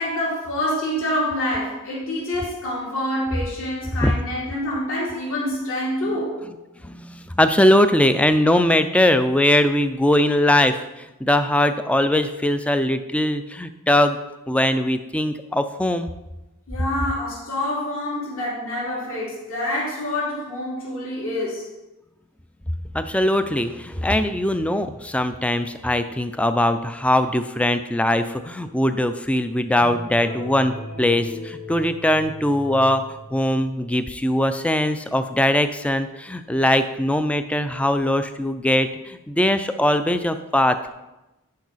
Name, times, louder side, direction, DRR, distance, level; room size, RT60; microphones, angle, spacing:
voice 1, 0.0-6.4 16.7-21.7, left 1 dB, 65° left, -6 dB, 2.9 m, -26 dB
voice 2, 6.8-14.2 14.5-16.1 22.9-33.0 33.3-40.9, left 1 dB, 5° left, 10 dB, 0.4 m, -21 dB
sound 1, 29.8-33.9, left 1 dB, 35° left, 1.0 m, -37 dB
10.5 x 4.7 x 4.1 m, 1.0 s
head